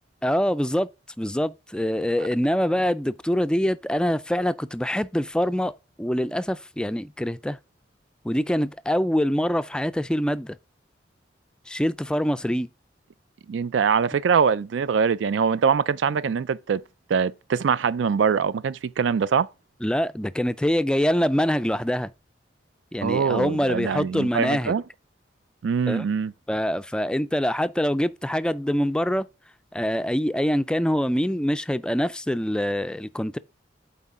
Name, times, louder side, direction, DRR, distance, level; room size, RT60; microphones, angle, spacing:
voice 1, 0.2-0.9 1.2-5.7 6.0-7.6 8.2-10.6 11.7-12.7 19.8-22.1 22.9-24.7 25.9-26.0 26.5-29.3 29.7-33.4, equal, 5° left, 0.3 m, -24 dB
voice 2, 13.5-16.8 17.1-19.5 23.0-24.8 25.6-26.3, right 6 dB, 85° right, 0.4 m, -23 dB
8.3 x 4.4 x 3.7 m
head